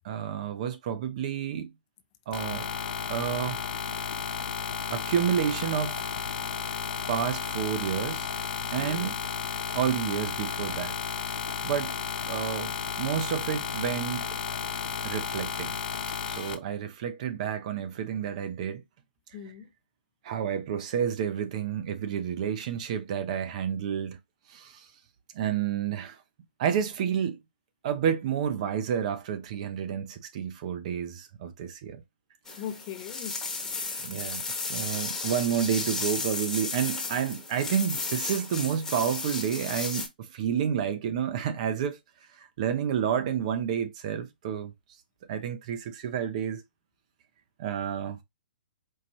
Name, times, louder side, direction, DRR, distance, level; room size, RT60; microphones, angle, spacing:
voice 1, 0.0-1.7 2.3-2.7 3.1-3.6 4.9-6.1 7.1-8.3 8.7-9.1 9.7-11.0 11.6-11.9 12.3-14.3 15.0-15.7 16.3-18.8 20.2-24.2 24.5-24.9 25.3-26.2 26.6-27.4 27.8-32.0 34.0-42.0 42.4-44.7 45.3-46.6 47.6-48.2, right 8 dB, 45° right, 0.7 m, -30 dB
sound 1, 2.3-16.5, left 7 dB, 60° left, 0.9 m, -33 dB
voice 2, 8.7-9.1 19.3-19.7 32.5-33.4 34.0-34.1 34.6-34.9, left 9 dB, 35° left, 0.6 m, -40 dB
sound 2, 32.5-40.1, left 3 dB, 10° left, 1.1 m, -34 dB
4.6 x 2.5 x 3.0 m
figure-of-eight pair, 125°, 5 cm